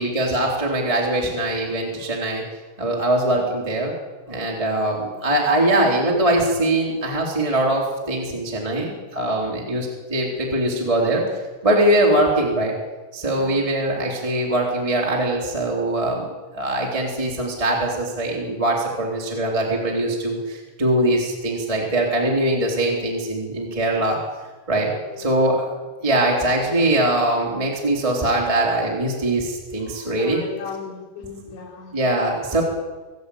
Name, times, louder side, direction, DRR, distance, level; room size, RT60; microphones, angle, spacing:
voice 1, 0.0-2.4 2.8-3.9 4.3-12.7 13.1-16.3 16.5-24.2 24.7-24.9 25.2-25.7 26.0-30.4 31.9-32.6, right 1 dB, 10° right, -2 dB, 2.7 m, -22 dB
voice 2, 24.7-25.3 30.1-31.9, left 6 dB, 70° left, 1 dB, 5.4 m, -37 dB
25.5 x 12.0 x 8.6 m, 1.3 s
omnidirectional pair, 5.4 m